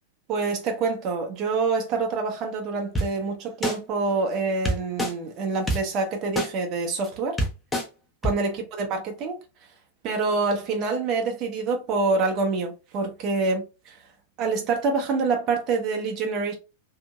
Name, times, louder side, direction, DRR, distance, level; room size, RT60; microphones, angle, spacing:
voice 1, 0.3-7.4 8.2-9.4 10.0-14.0 14.4-16.5, right 4 dB, 35° right, 0.7 m, -26 dB
sound 1, 3.0-3.1 3.6-3.8 4.7-5.1 5.7-5.8 6.4-6.5 7.0-7.1 7.4-7.8 8.2-8.3, equal, 10° left, 0.7 m, -24 dB
2.8 x 2.7 x 2.3 m
figure-of-eight pair, 95°, 0 cm